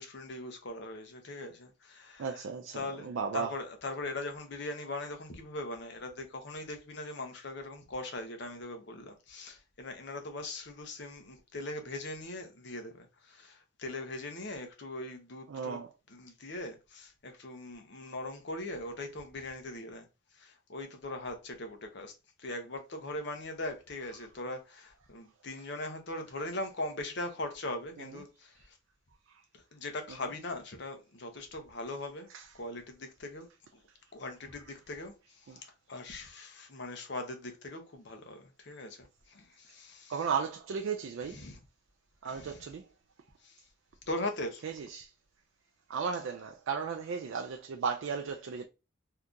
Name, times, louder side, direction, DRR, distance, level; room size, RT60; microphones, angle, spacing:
voice 1, 0.0-2.5 2.7-3.1 3.3-15.8 16.1-20.1 20.3-22.1 22.4-28.8 29.5-32.3 32.5-33.5 33.7-33.8 34.1-40.3 41.2-41.6 42.2-42.6 43.4-43.6 44.1-44.7, left 2 dB, 55° left, 0.7 m, -40 dB
voice 2, 2.2-3.5 15.5-15.9 32.3-32.4 35.5-35.6 40.1-41.4 42.2-42.8 44.6-45.1 45.9-48.7, right 6 dB, 70° right, 0.3 m, -35 dB
2.7 x 2.4 x 3.6 m
head